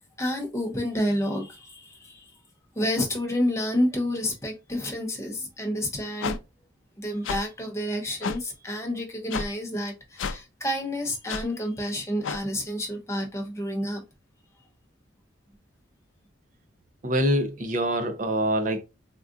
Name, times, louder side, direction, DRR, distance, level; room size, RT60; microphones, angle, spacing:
voice 1, 0.2-2.2 2.8-6.4 7.0-14.0, left 1 dB, 15° left, 0.6 m, -29 dB
sound 1, 6.2-6.4 7.2-7.4 8.2-8.4 9.3-9.5 10.2-10.4 11.3-11.4 12.2-12.4, left 5 dB, 75° left, 0.4 m, -30 dB
voice 2, 17.0-18.8, right 1 dB, 40° right, 0.5 m, -25 dB
3.6 x 2.4 x 2.4 m
head